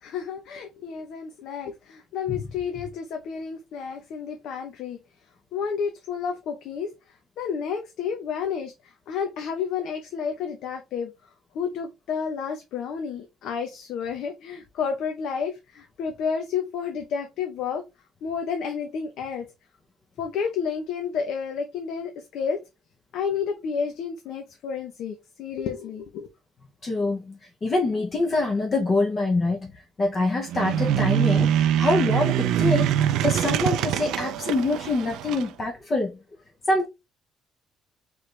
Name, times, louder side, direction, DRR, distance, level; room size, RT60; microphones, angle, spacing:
voice 1, 0.0-5.0 5.5-6.9 7.4-11.1 11.5-17.8 18.2-19.5 20.2-22.6 23.1-26.3, left 6 dB, 65° left, 0.8 m, -31 dB
voice 2, 26.8-29.7 30.0-36.1 36.7-36.9, left 2 dB, 25° left, 0.8 m, -25 dB
sound 1, 30.5-35.5, right 10 dB, 85° right, 0.4 m, -23 dB
4.7 x 3.3 x 3.3 m
cardioid pair, 175°, 0 cm